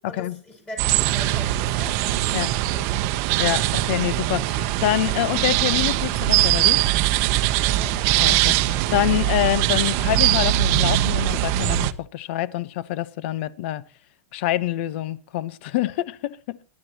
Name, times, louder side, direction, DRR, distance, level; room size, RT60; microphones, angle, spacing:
voice 1, 0.1-3.0 7.6-8.3, left 1 dB, 15° left, 7.4 m, -41 dB
sound 1, 0.8-11.9, right 14 dB, 40° right, 0.8 m, -21 dB
voice 2, 3.4-6.8 8.2-13.8 14.3-16.6, left 14 dB, 55° left, 0.9 m, -26 dB
23.0 x 12.0 x 2.9 m
supercardioid pair, 155°, 7 cm